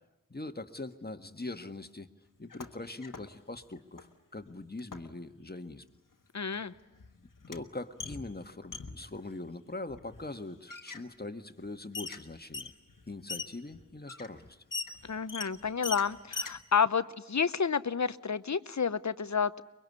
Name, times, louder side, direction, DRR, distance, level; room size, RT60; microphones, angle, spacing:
voice 1, 0.3-2.1 2.4-5.8 7.5-12.7 13.1-14.6, left 2 dB, 30° left, 8 dB, 1.6 m, -42 dB
sound 1, 2.4-3.3 3.6-4.1 4.8-5.1 6.2-6.3 6.5-9.2 9.9-10.3 10.7-11.0 11.6-11.7 11.9-16.6, left 4 dB, 85° left, 1.5 m, -41 dB
voice 2, 6.3-6.7 15.0-19.6, left 6 dB, 60° left, 14 dB, 0.8 m, -30 dB
24.0 x 22.5 x 9.6 m, 0.98 s
wide cardioid pair, 45°, 32 cm